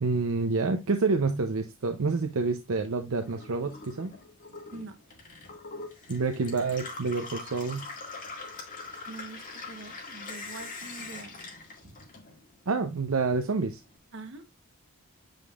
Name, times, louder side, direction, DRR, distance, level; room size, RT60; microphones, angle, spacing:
voice 1, 0.0-4.1 6.1-7.9 12.7-13.8, right 4 dB, 70° right, 0.6 m, -28 dB
Gurgling / Water tap faucet / Sink (filling or washing), 3.1-12.7 13.0-13.9, left 3 dB, 40° left, 1.9 m, -43 dB
voice 2, 4.7-5.0 9.0-11.4 11.8-12.1 14.1-14.5, right 2 dB, 55° right, 1.0 m, -44 dB
7.8 x 5.2 x 2.4 m
head